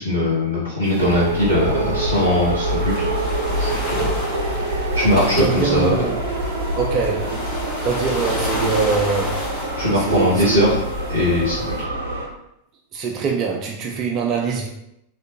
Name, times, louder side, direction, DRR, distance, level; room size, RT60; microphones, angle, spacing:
voice 1, 0.0-3.1 3.6-4.2 4.7-6.0 9.8-10.8 11.1-11.7, left 1 dB, 85° left, -8 dB, 0.8 m, -20 dB
sound 1, 0.8-11.8, left 1 dB, 45° left, 0.9 m, -32 dB
sound 2, 1.0-12.3, right 1 dB, 70° right, 0.7 m, -26 dB
voice 2, 5.2-6.2 6.7-7.4 7.8-9.4 10.0-10.6 12.9-14.7, right 5 dB, 35° right, 1 dB, 0.4 m, -23 dB
3.3 x 2.5 x 2.9 m, 0.81 s
figure-of-eight pair, 90°, 0 cm